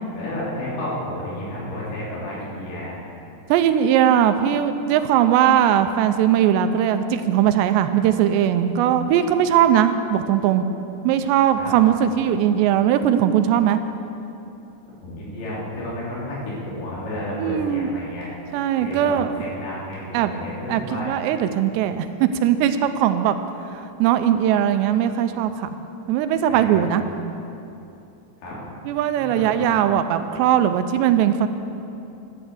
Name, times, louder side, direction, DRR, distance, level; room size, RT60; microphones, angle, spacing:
voice 1, 0.1-3.0 11.6-11.8 15.0-18.3 18.8-21.1 26.5-26.8 28.4-28.5 29.3-29.6, left 1 dB, 75° left, -7 dB, 5.5 m, -31 dB
voice 2, 3.5-10.7 11.0-13.8 17.4-17.9 18.5-19.3 20.1-20.4 20.7-23.4 23.7-25.7 26.1-27.0 28.9-31.5, right 10 dB, 85° right, 9 dB, 2.7 m, -19 dB
12.5 x 9.8 x 7.9 m, 2.8 s
omnidirectional pair, 5.1 m